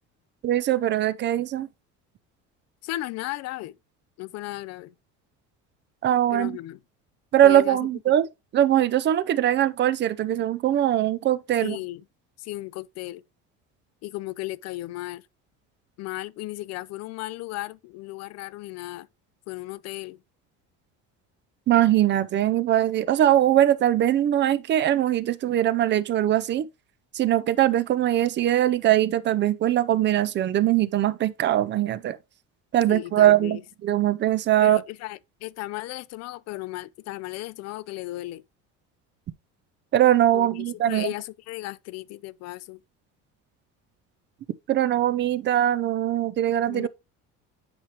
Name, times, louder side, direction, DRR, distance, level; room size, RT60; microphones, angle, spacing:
voice 1, 0.4-1.7 6.0-6.6 7.3-8.3 8.5-11.8 21.7-26.7 27.1-32.2 32.7-34.8 39.9-41.1 44.7-46.9, right 12 dB, 40° right, 0.5 m, -21 dB
voice 2, 2.8-3.7 4.2-4.9 6.3-6.8 7.4-7.9 11.6-12.0 12.4-13.2 14.0-15.2 16.0-19.1 19.5-20.2 32.9-33.6 34.6-38.4 40.3-42.8 46.7-46.9, left 18 dB, 60° left, 0.4 m, -35 dB
8.8 x 4.8 x 2.9 m
cardioid pair, 135°, 30 cm